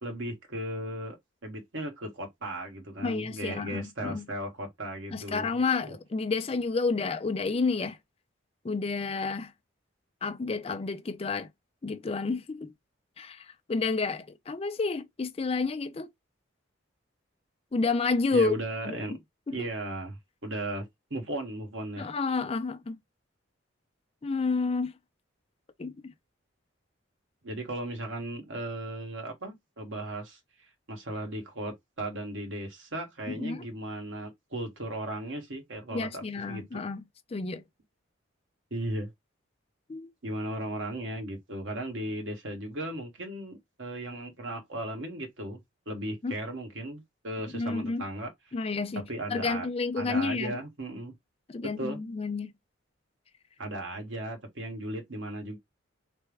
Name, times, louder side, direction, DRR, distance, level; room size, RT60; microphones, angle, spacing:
voice 1, 0.0-1.2 1.4-6.0 18.3-19.2 19.5-22.1 27.4-30.4 30.9-36.8 38.7-39.1 40.2-45.6 45.9-48.3 48.9-49.7 50.0-51.1 51.8-52.0 53.6-55.6, right 1 dB, 75° right, 1.3 m, -36 dB
voice 2, 3.0-4.3 5.1-8.0 8.6-9.5 10.2-11.5 11.8-12.7 13.2-16.1 17.7-18.6 18.9-19.0 19.5-19.6 22.0-23.0 24.2-24.9 25.8-26.1 33.3-33.7 35.9-37.0 37.3-37.6 39.9-40.1 46.2-46.4 47.5-48.0 48.5-49.0 49.3-50.6 51.5-52.5, left 4 dB, 30° left, 0.4 m, -30 dB
3.4 x 2.1 x 3.3 m
head